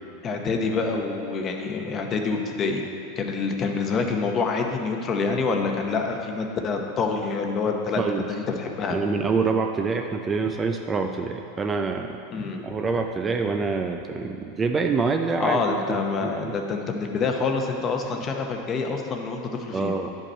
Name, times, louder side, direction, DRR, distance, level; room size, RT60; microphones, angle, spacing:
voice 1, 0.2-2.8 3.2-9.0 12.3-12.6 15.4-19.9, left 4 dB, 30° left, 3 dB, 0.8 m, -26 dB
voice 2, 8.9-12.2 12.6-16.5 19.7-20.1, right 4 dB, 20° right, 4 dB, 0.4 m, -26 dB
11.0 x 5.3 x 4.3 m, 2.7 s
supercardioid pair, 140°, 0 cm